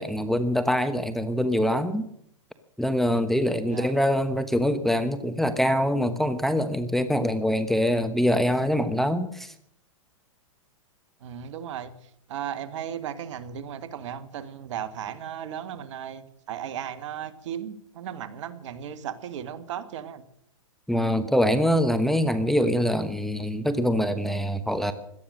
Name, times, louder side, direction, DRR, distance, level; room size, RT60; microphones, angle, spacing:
voice 1, 0.0-2.0 2.8-9.5 20.9-24.9, equal, ahead, 10 dB, 1.0 m, -24 dB
voice 2, 11.2-11.9 12.3-20.2, right 9 dB, 60° right, 11 dB, 1.7 m, -36 dB
17.5 x 12.0 x 6.4 m, 0.70 s
hypercardioid pair, 130°, 17 cm